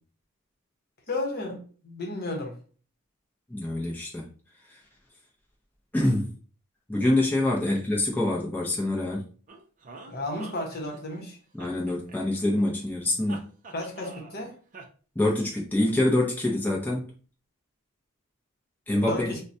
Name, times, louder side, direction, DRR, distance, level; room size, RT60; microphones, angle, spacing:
voice 1, 1.1-2.5 7.6-7.8 10.1-11.4 13.7-14.6 19.1-19.4, left 2 dB, 45° left, 0.9 m, -33 dB
voice 2, 3.5-4.3 4.7-4.8 5.9-6.3 6.9-9.3 11.5-13.5 15.2-17.1 18.9-19.3, left 1 dB, 10° left, 0.6 m, -25 dB
sound 1, 9.5-11.2 11.6-12.6 13.3-14.4 14.7-14.9, right 3 dB, 35° right, 0.5 m, -46 dB
4.5 x 2.2 x 2.6 m
head